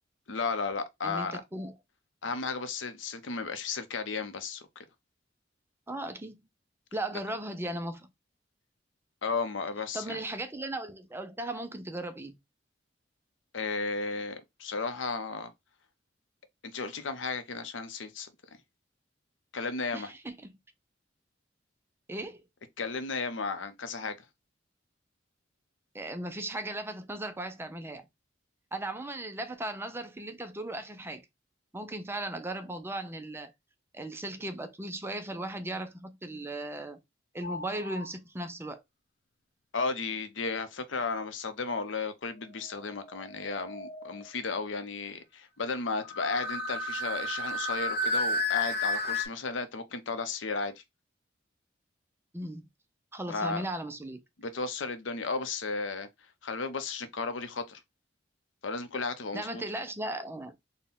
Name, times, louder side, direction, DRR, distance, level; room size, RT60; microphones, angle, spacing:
voice 1, 0.3-1.4 2.2-4.6 9.2-10.2 13.5-15.5 16.6-18.3 19.5-20.1 22.8-24.2 39.7-50.8 53.3-53.6 54.4-56.1 56.4-57.8 58.6-59.6, left 4 dB, 85° left, 0.7 m, -34 dB
voice 2, 1.0-1.7 5.9-6.4 6.9-8.1 9.9-12.4 19.9-20.4 22.1-22.4 25.9-28.0 28.7-31.2 31.7-33.5 33.9-37.0 37.3-38.8 52.3-52.7 53.1-54.2 59.3-60.5, right 1 dB, 15° right, 0.4 m, -37 dB
sound 1, 37.4-38.1 42.4-44.4 46.1-49.3, left 2 dB, 60° left, 0.9 m, -33 dB
4.2 x 2.2 x 3.6 m
head